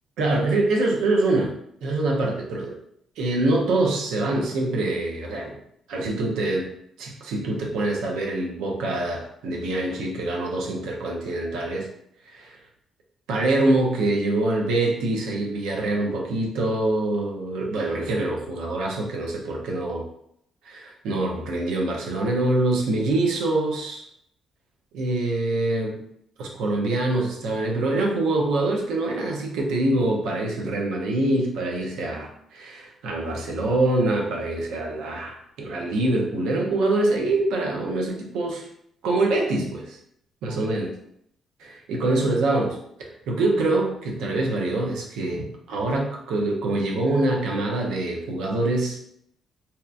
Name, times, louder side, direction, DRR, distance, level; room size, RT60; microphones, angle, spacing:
voice 1, 0.2-1.5 1.8-2.8 3.2-5.6 5.9-6.7 7.0-11.9 12.3-12.6 13.3-20.0 20.6-24.1 24.9-26.0 26.4-38.7 39.0-40.0 40.4-40.9 41.6-49.0, right 2 dB, 90° right, 0 dB, 0.6 m, -25 dB
2.8 x 2.1 x 2.4 m, 0.73 s
cardioid pair, 90°, 0 cm